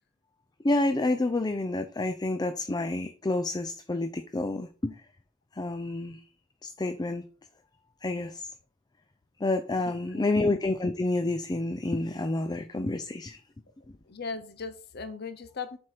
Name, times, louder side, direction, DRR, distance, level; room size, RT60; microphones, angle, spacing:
voice 1, 0.6-5.0 5.5-6.2 6.6-7.2 8.0-8.5 9.4-13.4, left 2 dB, 20° left, 0.5 m, -29 dB
voice 2, 9.9-10.3 14.1-15.8, left 4 dB, 55° left, 0.7 m, -38 dB
7.6 x 4.4 x 4.9 m
head